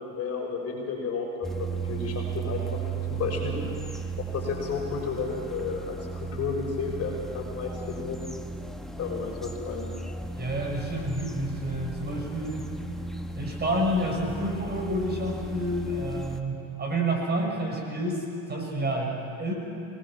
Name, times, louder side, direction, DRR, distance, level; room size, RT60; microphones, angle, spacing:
voice 1, 0.0-2.6 2.9-3.6 4.2-8.2 9.0-9.9, left 5 dB, 35° left, 0 dB, 6.7 m, -32 dB
sound 1, 1.4-16.4, right 4 dB, ahead, 1.6 m, -36 dB
voice 2, 10.3-12.7 13.3-19.5, right 1 dB, 20° right, 0 dB, 5.9 m, -29 dB
26.5 x 20.0 x 7.6 m, 2.7 s
hypercardioid pair, 95°, 44 cm